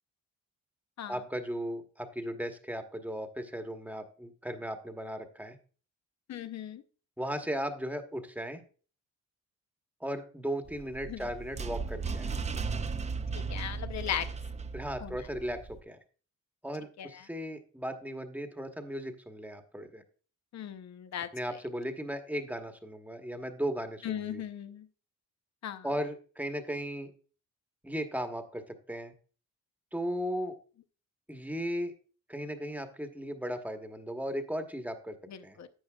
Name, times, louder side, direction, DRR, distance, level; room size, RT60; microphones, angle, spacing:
voice 1, 1.1-5.6 7.2-8.6 10.0-12.4 14.7-16.0 16.6-20.0 21.3-24.4 25.8-27.1 27.8-29.1 29.9-30.6 31.3-31.9 32.3-35.2 35.4-35.6, equal, 5° right, 6 dB, 1.1 m, -36 dB
voice 2, 6.3-6.8 11.1-11.2 13.3-14.3 15.0-15.2 17.0-17.2 20.5-21.3 24.0-24.9 25.6-25.9 35.3-35.7, left 10 dB, 55° left, 12 dB, 0.7 m, -37 dB
sound 1, 10.7-15.8, right 4 dB, 20° right, 0.5 m, -36 dB
11.0 x 7.9 x 2.3 m, 0.39 s
cardioid pair, 100°, 32 cm